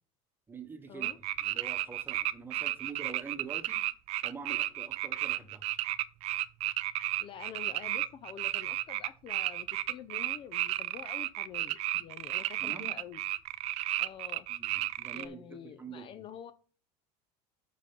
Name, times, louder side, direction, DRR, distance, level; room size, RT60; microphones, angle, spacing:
voice 1, 0.5-3.8 4.2-5.7 12.6-12.9 14.5-16.2, right 5 dB, 15° right, 8 dB, 1.1 m, -46 dB
sound 1, 1.0-15.2, right 15 dB, 40° right, 0.4 m, -33 dB
voice 2, 7.2-13.2 14.0-14.5 15.1-16.5, left 9 dB, 35° left, 13 dB, 0.4 m, -47 dB
7.4 x 5.9 x 5.3 m, 0.41 s
cardioid pair, 155°, 16 cm